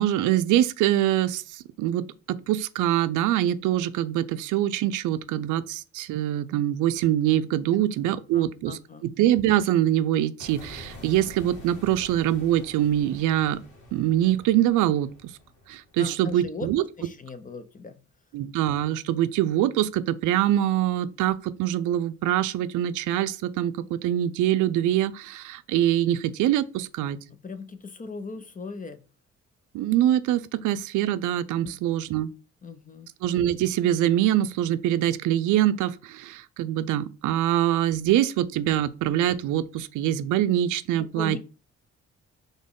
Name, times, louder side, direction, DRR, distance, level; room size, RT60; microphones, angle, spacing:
voice 1, 0.0-8.8 9.2-13.6 13.9-15.3 15.7-16.8 18.3-27.2 29.7-32.3 33.2-41.4, right 12 dB, 85° right, 0.5 m, -24 dB
voice 2, 8.1-9.1 16.0-16.7 17.0-18.0 27.3-29.0 31.6-32.0 32.6-33.1 41.0-41.4, left 4 dB, 25° left, 0.6 m, -39 dB
sound 1, 10.4-16.6, left 2 dB, 75° left, 2.1 m, -47 dB
4.2 x 3.4 x 3.6 m
cardioid pair, 90°, 30 cm